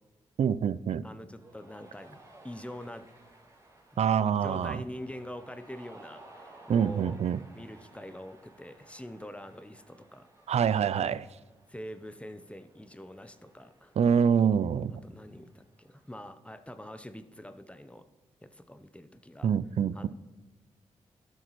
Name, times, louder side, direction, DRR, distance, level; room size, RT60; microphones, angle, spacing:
voice 1, 0.4-1.0 4.0-4.8 6.7-7.4 10.5-11.3 14.0-14.9 19.4-20.1, right 7 dB, 60° right, 0.4 m, -25 dB
voice 2, 1.0-3.1 4.2-7.2 7.5-10.3 11.7-14.0 15.0-18.1 18.4-19.5 19.9-20.1, left 1 dB, 10° left, 0.7 m, -44 dB
Cheering, 1.3-16.2, right 2 dB, 25° right, 2.4 m, -57 dB
12.5 x 6.6 x 3.1 m
supercardioid pair, 50°, 12 cm